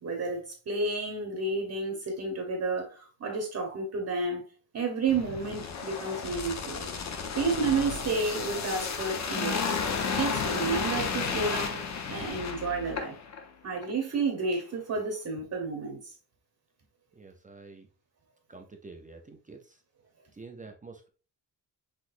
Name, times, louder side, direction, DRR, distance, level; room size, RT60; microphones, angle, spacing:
voice 1, 0.0-4.4 4.7-6.8 7.3-9.8 10.1-11.8 12.1-13.2 13.6-16.2, right 3 dB, 40° right, 1.0 m, -31 dB
sound 1, 5.1-13.4 13.8-13.9, left 5 dB, 40° left, 0.6 m, -33 dB
voice 2, 17.2-17.9 18.5-19.8 20.3-21.1, right 3 dB, 20° right, 0.5 m, -48 dB
6.0 x 3.1 x 2.5 m
wide cardioid pair, 175°, 41 cm